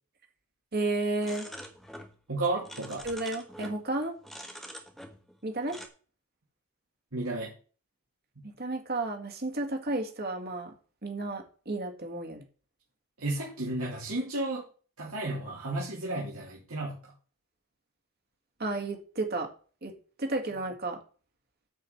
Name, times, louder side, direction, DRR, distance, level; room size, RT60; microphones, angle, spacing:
voice 1, 0.7-1.5 3.0-4.2 5.4-5.8 8.4-10.7 11.0-12.4 18.6-19.5 19.8-19.9 20.2-21.0, right 2 dB, 45° right, 3 dB, 2.1 m, -32 dB
sound 1, 1.2-2.1 2.4-3.8 4.2-5.4 5.7-5.9, equal, ahead, 1.2 m, -45 dB
voice 2, 2.3-3.0 7.1-7.5 13.2-14.6 15.0-17.0, right 2 dB, 75° right, -5 dB, 2.7 m, -32 dB
9.0 x 5.0 x 7.3 m, 0.39 s
head